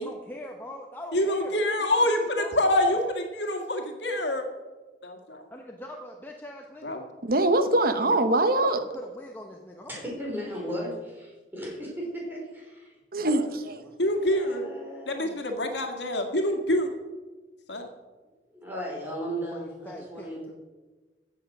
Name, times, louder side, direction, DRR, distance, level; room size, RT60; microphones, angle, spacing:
voice 1, 0.0-2.9 5.5-7.0 8.5-10.1 13.8-14.1 19.5-20.5, left 1 dB, 10° left, 0 dB, 1.0 m, -42 dB
voice 2, 1.1-4.5 5.0-5.4 6.8-7.0 14.0-14.7 15.1-16.9 17.7-17.9, left 1 dB, 85° left, 4 dB, 1.9 m, -26 dB
voice 3, 7.2-8.8 13.1-13.8, right 2 dB, 55° right, 9 dB, 1.1 m, -23 dB
voice 4, 9.9-12.9 14.2-15.3 18.5-20.5, equal, 10° right, -3 dB, 4.8 m, -36 dB
15.0 x 8.0 x 6.1 m, 1.3 s
head